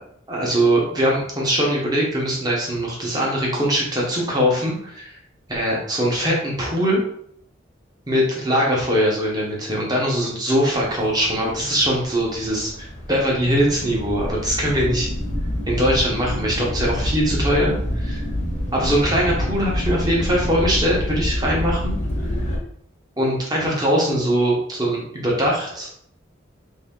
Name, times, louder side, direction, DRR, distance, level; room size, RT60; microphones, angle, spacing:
voice 1, 0.3-5.1 5.5-7.0 8.1-15.1 15.7-18.3 18.7-21.9 23.2-25.9, equal, 20° right, -3 dB, 1.0 m, -21 dB
sound 1, 10.7-22.6, left 1 dB, 40° left, 1.0 m, -27 dB
3.4 x 2.8 x 3.6 m, 0.66 s
head